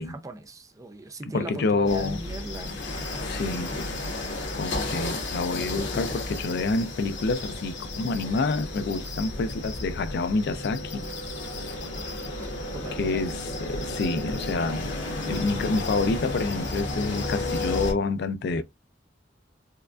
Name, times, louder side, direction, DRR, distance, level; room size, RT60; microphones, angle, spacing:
voice 1, 0.0-2.7 12.4-13.2, right 1 dB, 20° right, 0.5 m, -39 dB
voice 2, 1.3-2.2 3.2-3.7 4.5-11.0 13.0-14.9 15.3-18.6, left 3 dB, 60° left, 0.4 m, -28 dB
sound 1, 1.9-17.9, left 2 dB, 85° left, 1.3 m, -33 dB
4.5 x 2.4 x 2.4 m
head